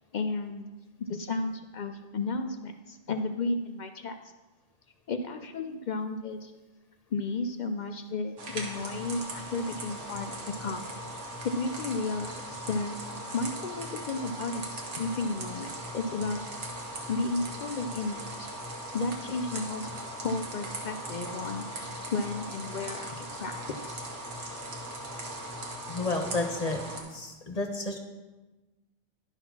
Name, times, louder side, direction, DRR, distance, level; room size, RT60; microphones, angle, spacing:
voice 1, 0.1-0.7 1.0-4.2 5.1-6.5 7.1-10.8 11.1-12.3 12.7-12.9 13.3-16.4 17.1-18.5 18.9-24.0, left 3 dB, 60° left, 7 dB, 0.5 m, -33 dB
sound 1, 8.4-27.0, right 1 dB, 85° right, 1.6 m, -39 dB
voice 2, 25.9-28.0, left 2 dB, 35° left, 4 dB, 0.9 m, -31 dB
10.5 x 4.1 x 5.9 m, 1.2 s
omnidirectional pair, 1.2 m